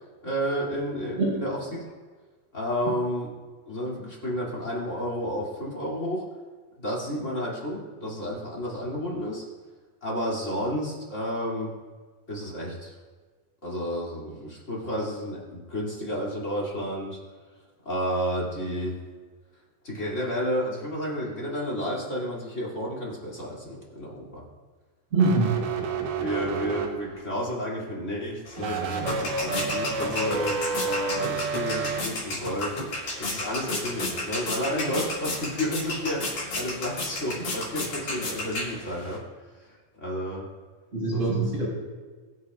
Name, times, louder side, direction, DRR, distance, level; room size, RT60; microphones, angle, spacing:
voice 1, 0.2-1.8 2.5-3.3 3.7-6.2 6.8-9.4 10.0-11.7 12.3-12.9 13.6-17.2 17.8-18.9 19.8-24.4 26.2-32.8 33.2-39.2 39.6-40.5 41.1-41.4, equal, 25° left, -5 dB, 2.6 m, -31 dB
voice 2, 25.1-25.6 40.9-41.7, right 3 dB, 65° right, -10 dB, 5.1 m, -23 dB
sound 1, 25.1-27.3 28.6-32.0, right 5 dB, 85° right, 2.6 m, -30 dB
sound 2, 28.5-39.2, left 2 dB, 70° left, 5.7 m, -33 dB
22.5 x 8.5 x 2.4 m, 1.4 s
omnidirectional pair, 3.7 m